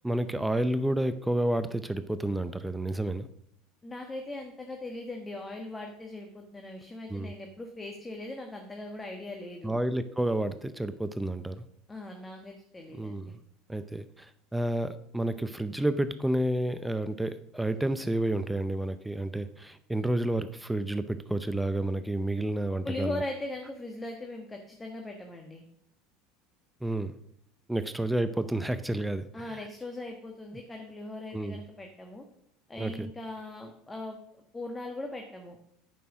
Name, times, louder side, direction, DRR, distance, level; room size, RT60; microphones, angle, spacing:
voice 1, 0.0-3.3 7.1-7.3 9.6-11.6 13.0-13.4 13.7-23.2 26.8-27.2 27.7-29.6 31.3-31.6 32.8-33.1, right 1 dB, 5° right, 12 dB, 0.6 m, -30 dB
voice 2, 3.8-9.8 11.9-13.4 22.8-25.6 29.3-32.2 32.7-35.6, left 2 dB, 15° left, 3 dB, 1.4 m, -39 dB
9.3 x 6.1 x 6.2 m, 0.70 s
hypercardioid pair, 90°, 0 cm